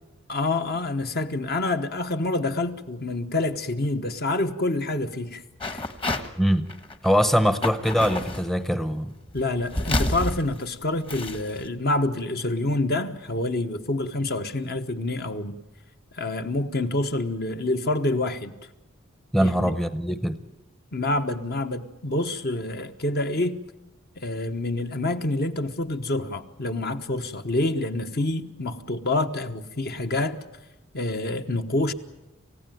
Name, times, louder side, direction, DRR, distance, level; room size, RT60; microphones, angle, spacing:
voice 1, 0.3-5.4 5.7-5.8 9.3-15.6 16.2-18.5 19.4-19.7 20.9-23.6 24.2-30.4 30.9-31.9, left 2 dB, 50° left, 1.2 m, -27 dB
sound 1, 5.6-6.3 6.6-7.2 7.6-8.5 9.3-11.7, left 1 dB, 25° left, 1.3 m, -29 dB
voice 2, 6.4-6.7 7.0-9.1 19.3-20.4, equal, ahead, 0.8 m, -22 dB
28.0 x 16.0 x 9.3 m
head